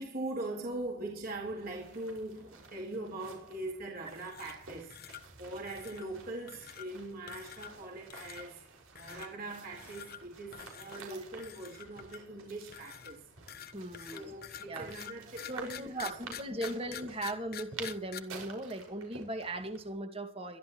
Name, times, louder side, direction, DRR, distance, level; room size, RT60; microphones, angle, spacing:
voice 1, 0.0-5.0 5.4-8.7 9.0-13.3 14.1-16.8, right 2 dB, 45° right, 4.1 m, -41 dB
sound 1, 1.3-19.9, right 4 dB, 85° right, 5.8 m, -51 dB
sound 2, 4.0-4.6 4.9-5.2 5.6-6.1 6.5-6.9 7.3-7.8 8.1-8.4 9.0-9.3 9.7-10.2 10.5-11.0 11.4-12.3 12.7-18.2, left 9 dB, 45° left, 1.2 m, -46 dB
voice 2, 13.7-14.3 14.7-14.9 15.5-20.6, right 1 dB, 25° right, 2.1 m, -38 dB
22.5 x 13.0 x 3.1 m
head